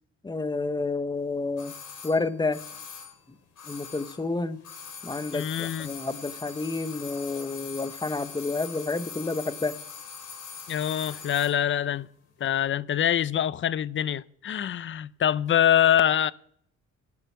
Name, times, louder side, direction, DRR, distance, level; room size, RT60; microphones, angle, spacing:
voice 1, 0.2-1.7 2.0-2.6 3.7-4.6 5.0-9.7, left 3 dB, 15° left, 0.9 m, -30 dB
sound 1, 1.6-4.3 4.6-11.6 11.9-12.0, left 6 dB, 75° left, 4.1 m, -42 dB
voice 2, 5.3-5.9 10.7-12.1 12.4-16.3, left 10 dB, 40° left, 0.6 m, -24 dB
11.5 x 6.7 x 9.6 m
cardioid pair, 90°, 30 cm